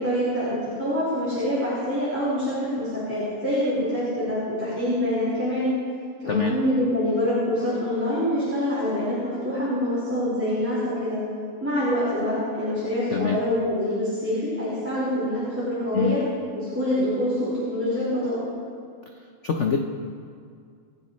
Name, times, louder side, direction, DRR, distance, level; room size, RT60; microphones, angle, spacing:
voice 1, 0.0-5.7 6.2-11.2 11.6-16.2 16.5-18.4, left 1 dB, 5° right, -11 dB, 4.7 m, -25 dB
voice 2, 13.1-13.4 15.9-16.2 19.4-19.8, left 6 dB, 85° left, 4 dB, 0.6 m, -24 dB
28.0 x 11.0 x 3.2 m, 2.2 s
omnidirectional pair, 2.4 m